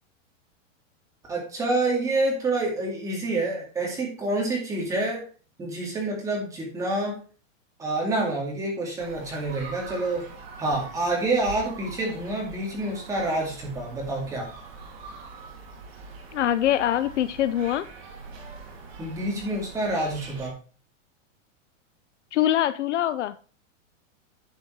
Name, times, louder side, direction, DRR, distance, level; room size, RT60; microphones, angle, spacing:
voice 1, 1.3-5.2 5.6-7.2 7.8-10.2 10.6-14.5 19.0-20.5, right 2 dB, 10° right, -2 dB, 2.3 m, -27 dB
sound 1, 9.0-20.5, right 4 dB, 50° right, 3.7 m, -43 dB
voice 2, 16.3-17.9 22.3-23.4, left 11 dB, 65° left, 14 dB, 0.6 m, -24 dB
11.0 x 5.6 x 4.6 m, 0.38 s
supercardioid pair, 175°, 39 cm